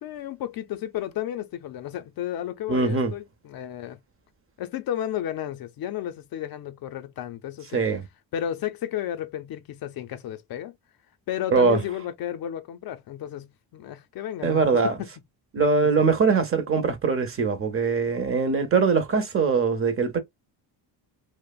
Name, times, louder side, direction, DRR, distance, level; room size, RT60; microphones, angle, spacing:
voice 1, 0.0-4.0 4.6-7.8 8.3-10.8 11.3-14.9 15.8-16.1, left 11 dB, 60° left, 0.5 m, -33 dB
voice 2, 2.7-3.1 7.7-8.0 11.5-11.8 14.4-14.9 15.5-20.2, right 5 dB, 30° right, 0.6 m, -22 dB
2.8 x 2.0 x 2.3 m
cardioid pair, 110°, 42 cm